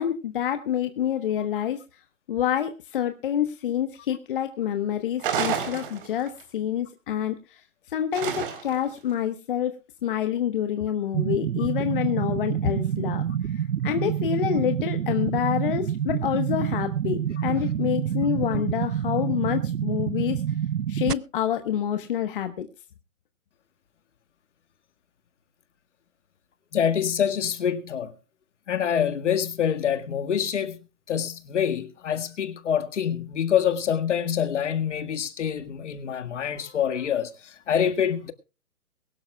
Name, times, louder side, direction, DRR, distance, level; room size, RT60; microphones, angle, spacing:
voice 1, 0.0-1.8 2.3-20.4 20.9-22.7, left 10 dB, 35° left, 1.3 m, -27 dB
sound 1, 5.2-6.4 8.1-8.9, right 8 dB, 35° right, 3.9 m, -29 dB
sound 2, 11.1-21.1, right 9 dB, 85° right, 0.7 m, -27 dB
voice 2, 26.7-28.1 28.7-30.8 31.1-38.3, left 8 dB, 50° left, 1.9 m, -26 dB
22.5 x 12.5 x 2.3 m
hypercardioid pair, 155°, 45 cm